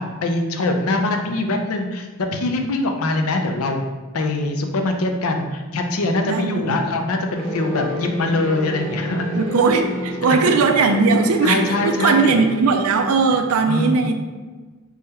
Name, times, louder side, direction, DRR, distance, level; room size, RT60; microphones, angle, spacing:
voice 1, 0.0-3.8 4.1-9.3 11.4-12.4 13.7-14.0, left 2 dB, 85° left, 4 dB, 0.5 m, -23 dB
voice 2, 6.2-6.8 9.3-14.1, right 4 dB, 85° right, 6 dB, 0.4 m, -18 dB
sound 1, 7.3-12.6, equal, 60° right, 1.1 m, -31 dB
3.5 x 2.3 x 4.1 m, 1.3 s
head